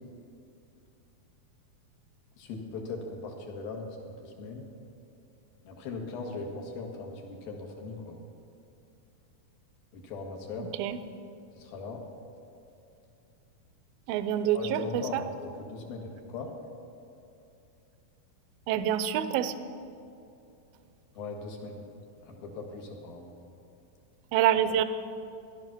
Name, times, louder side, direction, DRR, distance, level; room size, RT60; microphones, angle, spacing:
voice 1, 2.4-4.6 5.6-8.2 9.9-10.7 11.5-12.0 14.5-15.3 15.6-16.5 21.2-21.8 22.2-23.4, left 3 dB, 80° left, 1 dB, 3.6 m, -39 dB
voice 2, 10.6-11.0 14.1-15.2 18.7-19.5 24.3-24.8, right 10 dB, 85° right, 12 dB, 2.4 m, -27 dB
16.5 x 12.0 x 6.0 m, 2.7 s
omnidirectional pair, 4.2 m